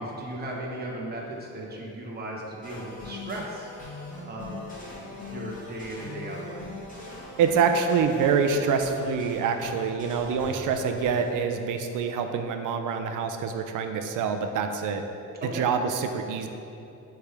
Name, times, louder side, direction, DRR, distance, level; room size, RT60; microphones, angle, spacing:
voice 1, 0.0-3.7 4.3-4.6 5.1-6.7 15.4-15.7, right 1 dB, 30° right, -3 dB, 1.0 m, -36 dB
sound 1, 2.6-11.3, left 2 dB, 25° left, 1.5 m, -40 dB
voice 2, 7.4-15.0 15.4-16.5, right 6 dB, 65° right, 6 dB, 0.6 m, -26 dB
9.2 x 3.5 x 3.5 m, 2.8 s
cardioid pair, 145°, 33 cm